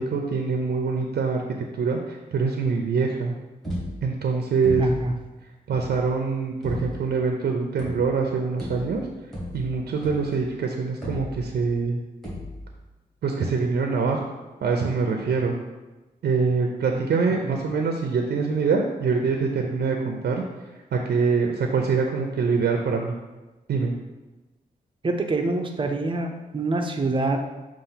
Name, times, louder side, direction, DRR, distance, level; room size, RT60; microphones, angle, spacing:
voice 1, 0.0-1.4 1.7-3.3 4.0-4.9 5.7-9.1 9.5-12.0 13.2-14.2 14.6-15.6 16.2-20.4 20.9-23.1 23.7-23.9, right 5 dB, 85° right, 2 dB, 0.6 m, -24 dB
sound 1, 3.6-4.3 4.6-5.2 5.7-6.1 6.6-7.1 7.8-8.3 8.6-10.5 11.0-11.8 12.2-12.8, left 1 dB, ahead, 2.1 m, -35 dB
voice 2, 4.8-5.1 17.4-17.5 25.0-27.4, right 2 dB, 30° right, 4 dB, 0.7 m, -25 dB
6.7 x 2.6 x 5.6 m, 1.1 s
wide cardioid pair, 125°, 16 cm